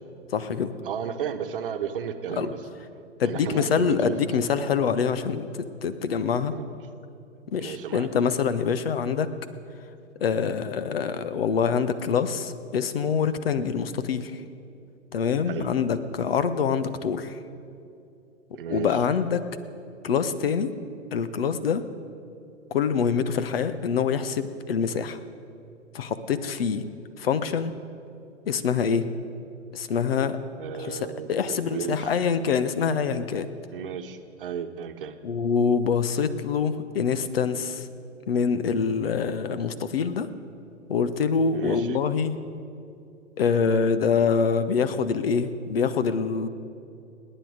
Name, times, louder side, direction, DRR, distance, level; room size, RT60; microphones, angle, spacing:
voice 1, 0.3-0.7 2.4-2.5 3.2-5.5 5.8-6.5 7.5-9.3 10.2-14.3 15.1-17.3 18.7-19.4 20.0-20.7 21.1-21.8 22.7-25.2 25.9-26.8 27.2-27.7 28.5-29.1 29.7-30.4 30.9-31.0 31.3-33.5 35.2-37.8 38.3-40.3 40.9-42.3 43.4-46.5, left 6 dB, 50° left, 13 dB, 1.0 m, -25 dB
voice 2, 0.8-2.6 3.2-4.4 6.5-6.7 7.6-8.1 15.5-15.7 18.5-19.1 30.6-32.3 33.7-35.2 41.5-42.0, right 8 dB, 45° right, 7 dB, 1.2 m, -34 dB
27.5 x 10.0 x 5.1 m, 2.6 s
figure-of-eight pair, 120°, 37 cm